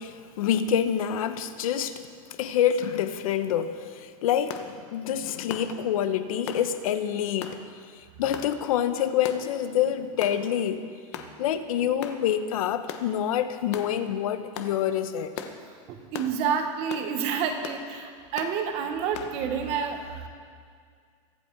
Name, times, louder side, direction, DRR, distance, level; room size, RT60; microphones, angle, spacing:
voice 1, 0.0-2.1 2.4-4.6 4.9-7.7 8.2-10.9 11.4-15.3, left 9 dB, 75° left, 11 dB, 0.9 m, -27 dB
sound 1, 4.5-4.7 5.5-5.7 6.5-6.7 7.4-7.6 8.3-8.5 9.2-9.5 10.2-10.4 11.1-11.3 12.0-12.2 12.9-13.1 13.7-13.9 14.5-14.7 15.4-15.6 16.1-16.3 16.9-17.1 17.6-17.8 18.4-18.5 19.1-19.3, left 9 dB, 50° left, 1.1 m, -37 dB
voice 2, 15.9-20.3, right 6 dB, 35° right, 6 dB, 1.2 m, -29 dB
23.0 x 8.0 x 4.7 m, 2.1 s
supercardioid pair, 175°, 18 cm